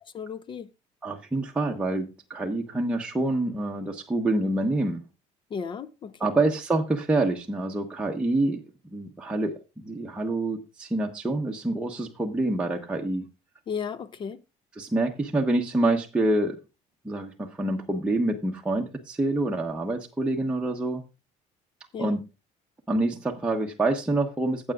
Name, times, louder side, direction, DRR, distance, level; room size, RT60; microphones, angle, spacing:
voice 1, 0.1-0.7 5.5-6.3 13.7-14.4 21.9-22.1, left 6 dB, 35° left, 0.6 m, -34 dB
voice 2, 1.0-5.0 6.2-8.6 8.9-13.2 14.8-16.6 17.0-21.0 22.0-22.2 22.9-24.7, right 2 dB, 5° right, 1.1 m, -26 dB
15.5 x 7.8 x 2.4 m
cardioid pair, 140°, 15 cm